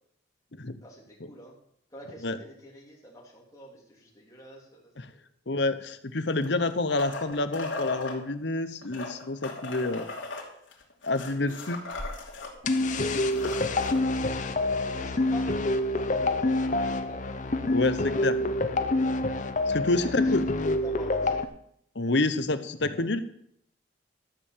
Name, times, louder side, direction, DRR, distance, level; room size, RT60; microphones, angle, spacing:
voice 1, 0.8-1.5 1.9-4.8 11.3-11.5 12.8-13.8 14.8-17.3 17.6-19.2 19.9-20.4 20.6-21.4, equal, 15° left, -3 dB, 3.2 m, -46 dB
voice 2, 5.5-10.0 11.1-11.8 17.7-18.0 18.2-18.3 19.7-20.4 21.9-23.2, left 2 dB, 65° left, 11 dB, 1.0 m, -28 dB
sound 1, 6.3-8.2 8.8-12.5 12.9-13.0 13.2-14.0 15.5-15.6, left 3 dB, 80° left, 2.8 m, -37 dB
sound 2, 12.6-21.4, left 2 dB, 40° left, 0.7 m, -27 dB
13.0 x 6.7 x 7.4 m, 0.70 s
head